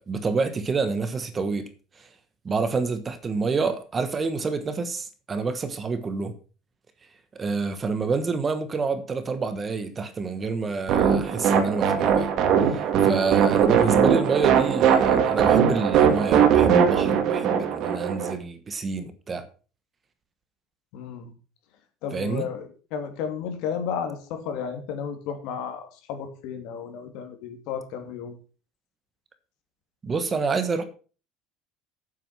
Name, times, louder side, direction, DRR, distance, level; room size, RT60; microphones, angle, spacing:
voice 1, 0.0-1.7 2.0-2.1 2.4-6.3 7.3-12.3 12.6-19.4 22.1-22.5 30.0-30.8, right 4 dB, 20° right, 1.2 m, -28 dB
sound 1, 10.9-18.3, right 8 dB, 50° right, 2.2 m, -20 dB
voice 2, 20.9-21.3 22.0-25.8 26.1-28.4, left 7 dB, 65° left, 2.9 m, -33 dB
8.9 x 7.7 x 6.1 m
cardioid pair, 150°, 0 cm